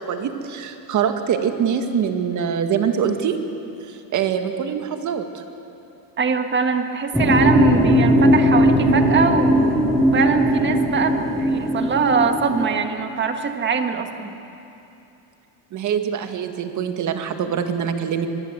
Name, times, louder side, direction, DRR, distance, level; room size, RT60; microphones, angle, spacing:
voice 1, 0.0-3.4 3.9-5.4 15.7-18.3, right 7 dB, 40° right, 6 dB, 1.9 m, -24 dB
voice 2, 6.2-14.4, right 5 dB, 25° right, 6 dB, 1.6 m, -22 dB
sound 1, 7.1-12.7, equal, ahead, 4.5 m, -18 dB
23.5 x 21.5 x 8.1 m, 2.9 s
cardioid pair, 155°, 45 cm